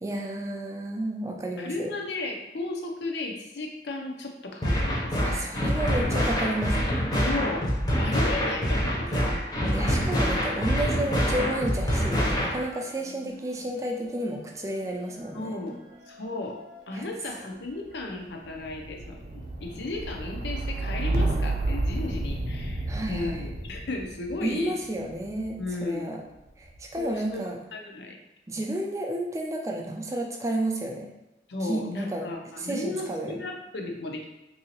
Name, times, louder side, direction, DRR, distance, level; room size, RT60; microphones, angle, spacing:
voice 1, 0.0-1.9 5.2-7.0 9.7-15.6 16.9-17.0 22.9-23.4 24.4-26.2 26.6-27.6 28.5-31.1 31.6-32.2 32.6-33.4, right 1 dB, 15° right, 0 dB, 0.4 m, -31 dB
voice 2, 1.6-5.2 7.2-7.7 8.0-9.3 15.3-15.8 16.1-16.6 16.9-24.8 25.6-26.2 27.0-28.2 31.5-34.3, left 2 dB, 80° left, 2 dB, 0.6 m, -34 dB
sound 1, 4.6-12.6, equal, 25° left, 0.6 m, -26 dB
sound 2, 9.0-10.4 10.6-25.7 26.4-27.0, right 2 dB, 60° right, 0.6 m, -34 dB
3.8 x 2.7 x 2.9 m, 0.98 s
head